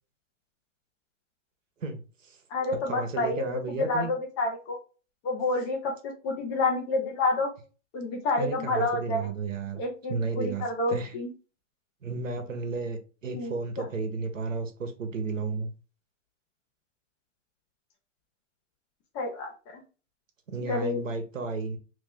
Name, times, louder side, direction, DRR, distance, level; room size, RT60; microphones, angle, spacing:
voice 1, 1.8-2.4 2.9-4.1 8.4-11.1 12.0-15.7 20.5-21.8, right 4 dB, 85° right, 1.1 m, -33 dB
voice 2, 2.5-4.8 5.2-7.5 7.9-9.3 9.8-11.3 13.3-13.9 19.1-19.8 20.6-21.0, left 2 dB, 25° left, 0.7 m, -29 dB
2.9 x 2.8 x 3.5 m
hypercardioid pair, 140°, 37 cm